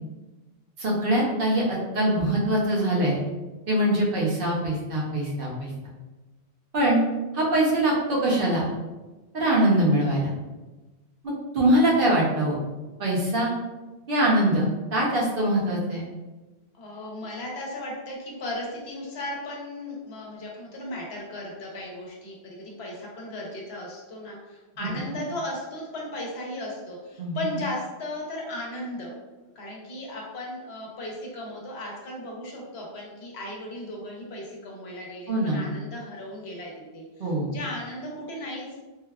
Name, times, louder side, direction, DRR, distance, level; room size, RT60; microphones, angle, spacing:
voice 1, 0.8-3.2 3.7-5.7 6.7-7.0 7.3-8.8 9.3-10.3 11.2-12.6 13.0-13.6 14.1-16.0 27.2-27.5 35.3-35.6 37.2-37.5, right 1 dB, 60° right, -4 dB, 0.9 m, -23 dB
voice 2, 16.7-29.2 29.6-38.8, left 1 dB, 75° left, -2 dB, 1.0 m, -36 dB
3.3 x 2.2 x 2.2 m, 1.1 s
omnidirectional pair, 1.1 m